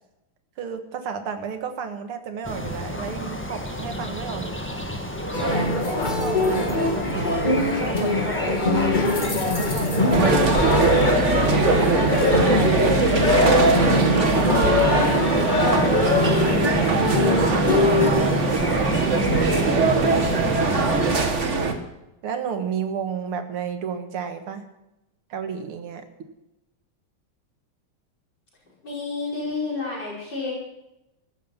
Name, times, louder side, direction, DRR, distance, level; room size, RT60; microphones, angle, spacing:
voice 1, 0.6-4.6 5.4-8.9 9.3-10.7 11.8-16.0 16.5-17.4 18.2-20.0 20.6-21.6 22.2-24.6 25.3-26.1, right 6 dB, 80° right, 8 dB, 2.4 m, -32 dB
sound 1, 2.4-21.2, equal, 5° left, 1.4 m, -29 dB
sound 2, 5.3-18.1, left 2 dB, 25° left, 1.6 m, -22 dB
sound 3, 10.1-21.7, right 3 dB, 35° right, 1.6 m, -22 dB
voice 2, 28.8-30.5, left 3 dB, 50° left, -5 dB, 5.8 m, -30 dB
16.0 x 13.0 x 5.8 m, 0.92 s
omnidirectional pair, 2.4 m